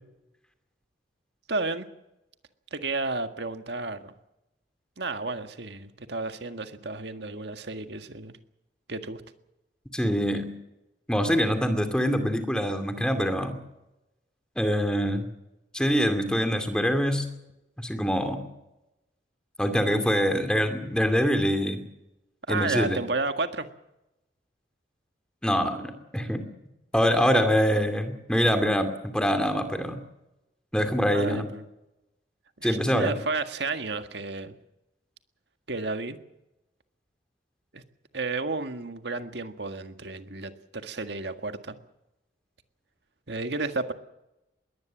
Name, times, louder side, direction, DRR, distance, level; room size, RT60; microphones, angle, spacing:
voice 1, 1.5-1.9 2.7-4.1 5.0-8.4 8.9-9.2 22.5-23.7 31.1-31.6 32.6-34.5 35.7-36.2 37.7-37.8 38.1-41.8 43.3-43.9, right 3 dB, 70° right, 8 dB, 1.7 m, -32 dB
voice 2, 9.9-10.5 11.1-13.6 14.6-15.3 15.7-17.3 17.8-18.4 19.6-21.9 22.5-23.0 25.4-26.4 26.9-30.0 30.7-31.5 32.6-33.1, equal, 5° left, 7 dB, 2.5 m, -24 dB
22.0 x 18.5 x 7.4 m, 0.93 s
head